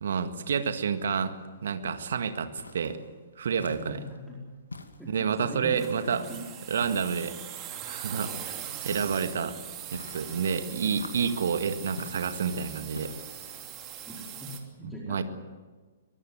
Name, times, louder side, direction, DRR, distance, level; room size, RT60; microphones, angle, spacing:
voice 1, 0.0-1.4 1.6-3.0 3.4-4.0 5.1-6.2 6.7-7.4 7.9-9.6 9.9-13.2 14.8-15.2, right 6 dB, 60° right, 9 dB, 1.8 m, -29 dB
sound 1, 2.6-3.0 3.6-4.2 4.7-5.4 5.9-6.3 6.8-7.4 8.9-9.4 9.9-10.4 10.9-11.4 12.0-12.4 12.9-13.4, left 3 dB, 75° left, 2.3 m, -44 dB
voice 2, 3.6-4.4 5.0-6.4 14.1-14.5 14.8-15.2, equal, ahead, -6 dB, 4.8 m, -41 dB
sound 2, 5.8-14.6, right 10 dB, 25° right, 3.0 m, -41 dB
23.5 x 20.5 x 7.9 m, 1.4 s
figure-of-eight pair, 115°, 0 cm